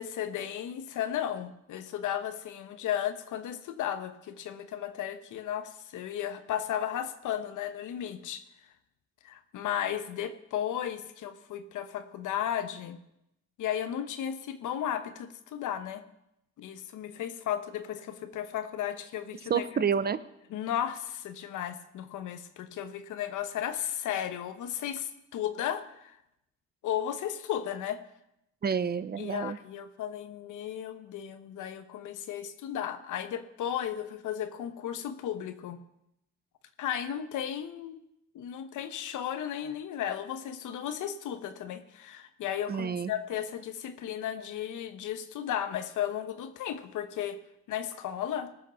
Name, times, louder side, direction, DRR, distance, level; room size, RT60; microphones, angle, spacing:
voice 1, 0.0-8.4 9.2-13.0 13.6-16.0 16.6-19.6 20.5-26.2 26.8-28.0 29.2-35.8 36.8-38.0 38.3-47.4 47.7-48.5, left 10 dB, 80° left, 10 dB, 1.1 m, -34 dB
voice 2, 19.5-20.2 28.6-29.6 42.7-43.1, right 6 dB, 30° right, 15 dB, 0.7 m, -29 dB
19.0 x 6.4 x 5.8 m, 0.83 s
cardioid pair, 90°, 30 cm